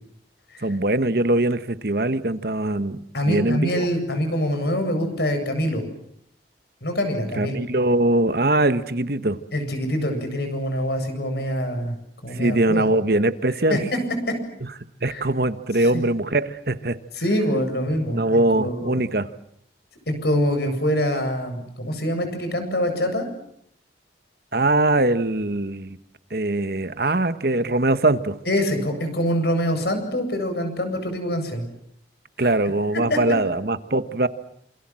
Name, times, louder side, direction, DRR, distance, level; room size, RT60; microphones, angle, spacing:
voice 1, 0.6-3.9 7.4-9.4 12.3-13.8 14.6-14.7 15.0-17.0 18.1-19.3 24.5-26.0 26.3-28.4 32.4-34.3, right 2 dB, 55° right, 12 dB, 1.3 m, -22 dB
voice 2, 3.1-5.8 6.8-7.6 9.5-12.0 12.2-12.9 13.7-14.0 14.3-14.4 15.0-15.2 15.7-15.9 17.1-19.0 20.1-23.3 28.5-31.6 32.4-32.5 33.1-33.2, equal, 60° left, 7 dB, 8.0 m, -25 dB
28.0 x 27.5 x 7.7 m, 0.71 s
head